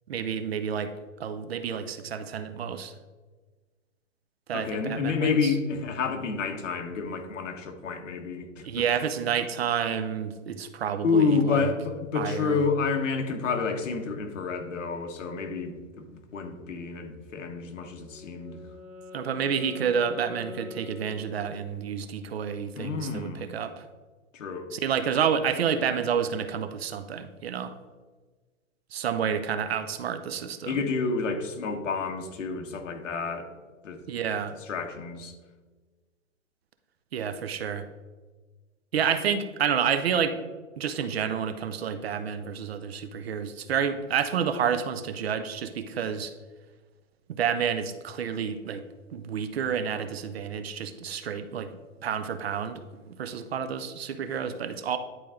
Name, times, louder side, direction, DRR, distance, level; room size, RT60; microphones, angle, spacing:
voice 1, 0.1-0.9 1.2-2.9 4.5-5.5 8.6-11.7 12.1-12.6 19.1-23.8 24.7-27.7 28.9-30.8 34.1-34.6 37.1-37.9 38.9-40.4 40.8-46.3 47.3-48.8 49.1-51.7 52.0-55.0, right 7 dB, 50° right, 11 dB, 0.6 m, -29 dB
voice 2, 4.5-8.8 11.0-18.6 22.7-23.5 24.3-24.7 30.6-33.5 33.8-34.0 34.6-35.3, left 5 dB, 65° left, 5 dB, 1.3 m, -29 dB
Wind instrument woodwind instrument, 17.9-21.9, left 3 dB, 35° right, 1.8 m, -44 dB
10.5 x 4.5 x 3.7 m, 1.3 s
hypercardioid pair, 170°, 40 cm